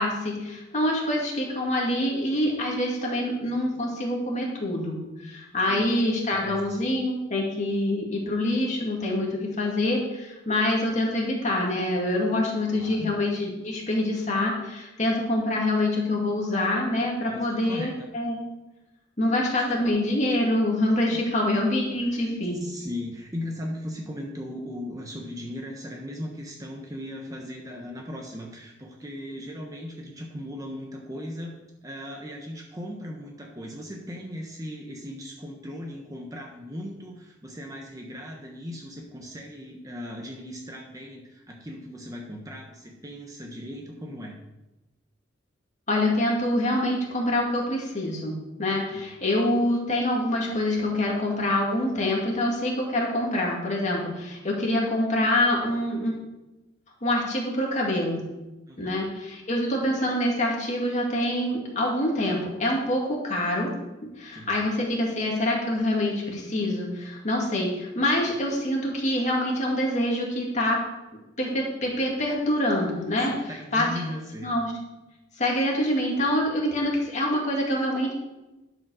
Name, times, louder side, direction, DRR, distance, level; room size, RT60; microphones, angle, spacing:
voice 1, 0.0-18.4 19.2-22.6 45.9-56.1 57.0-58.2 58.8-63.7 64.2-70.8 71.4-73.3 73.7-73.9 74.4-74.7 75.4-78.1, left 1 dB, 35° left, -1 dB, 2.3 m, -25 dB
voice 2, 6.4-6.8 12.7-13.2 17.2-18.1 21.1-21.2 22.1-22.3 22.6-31.5 31.8-44.4 48.9-49.2 58.7-58.9 64.3-64.5 73.2-74.5, left 1 dB, 20° right, 1 dB, 1.0 m, -38 dB
11.5 x 5.1 x 6.3 m, 1.0 s
head